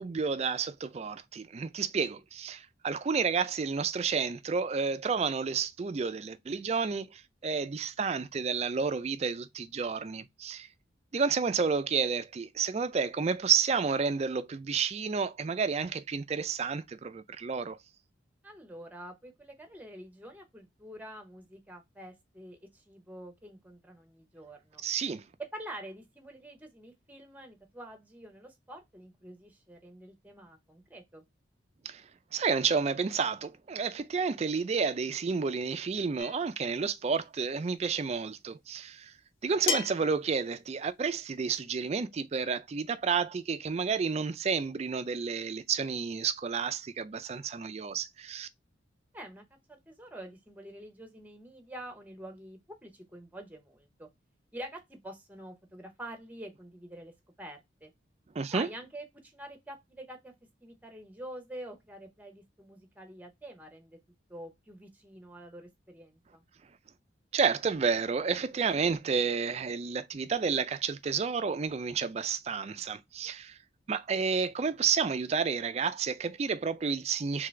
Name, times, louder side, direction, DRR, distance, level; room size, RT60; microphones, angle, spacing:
voice 1, 0.0-10.7 11.1-17.8 24.8-25.2 31.8-32.0 32.3-39.1 39.4-48.5 58.4-58.7 67.3-73.6 73.9-77.5, right 5 dB, 35° right, 0.3 m, -30 dB
voice 2, 18.4-24.8 25.4-31.2 49.1-54.1 54.5-57.1 57.4-57.9 58.5-60.3 60.6-64.0 64.3-66.4, right 1 dB, 10° right, 0.8 m, -46 dB
sound 1, 36.2-36.5 38.1-38.2 39.7-40.1, left 5 dB, 90° left, 0.8 m, -32 dB
3.8 x 3.2 x 3.2 m
head